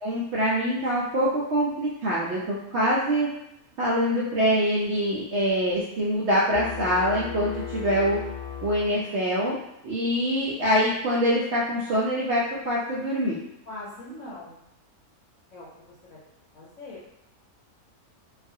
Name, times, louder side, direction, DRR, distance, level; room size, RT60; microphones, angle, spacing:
voice 1, 0.0-3.3 3.8-8.2 8.6-9.6 9.8-13.4, equal, 70° right, -7 dB, 0.6 m, -24 dB
sound 1, 6.5-9.5, left 8 dB, 85° left, 0.4 m, -37 dB
voice 2, 13.6-14.7 15.5-16.2 16.5-17.0, left 2 dB, 65° left, -5 dB, 0.9 m, -42 dB
2.4 x 2.4 x 2.6 m, 0.86 s
omnidirectional pair, 1.6 m